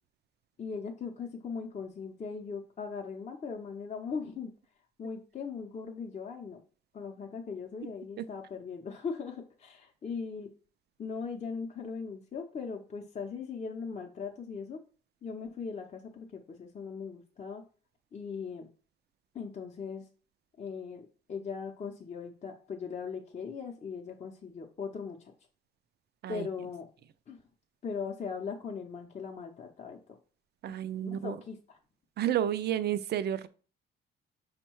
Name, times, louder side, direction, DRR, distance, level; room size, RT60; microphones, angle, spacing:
voice 1, 0.6-4.5 5.0-6.6 6.9-10.5 11.0-14.8 15.2-17.6 18.1-18.7 19.3-20.1 20.6-25.3 26.3-26.9 27.3-27.4 27.8-30.2 31.0-31.8, left 5 dB, 35° left, 0.7 m, -39 dB
voice 2, 30.6-31.4 32.2-33.5, right 10 dB, 55° right, 0.4 m, -31 dB
5.3 x 2.2 x 4.5 m
cardioid pair, 90°, 20 cm